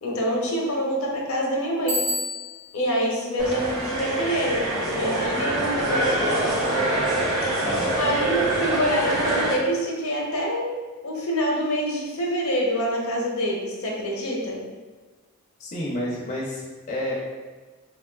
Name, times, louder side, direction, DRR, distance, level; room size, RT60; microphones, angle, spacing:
voice 1, 0.0-2.0 2.7-6.5 8.0-10.7 11.0-14.6, equal, 75° left, -2 dB, 0.6 m, -26 dB
Bicycle bell, 1.9-2.8, left 1 dB, 25° right, 0.4 m, -28 dB
sound 1, 3.4-9.5, right 1 dB, 70° right, 0.8 m, -25 dB
voice 2, 7.6-7.9 15.6-17.1, left 1 dB, 35° left, -5 dB, 0.4 m, -30 dB
3.5 x 2.3 x 2.2 m, 1.3 s
head